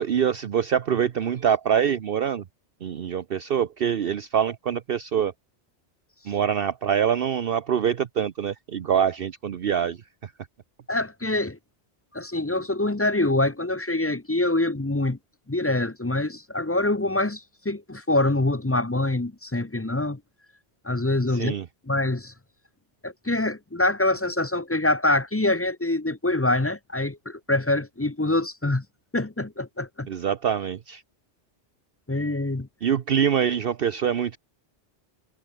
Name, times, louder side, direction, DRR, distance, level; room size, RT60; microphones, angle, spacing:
voice 1, 0.0-2.4 2.8-5.3 6.2-10.3 21.3-21.7 30.1-31.0 32.8-34.4, right 8 dB, 60° right, 0.9 m, -25 dB
voice 2, 10.9-11.6 12.1-15.2 15.5-20.2 20.8-21.6 21.9-22.3 23.0-28.8 29.1-30.1 32.1-32.7, left 2 dB, 15° left, 0.7 m, -25 dB
omnidirectional pair, 1.1 m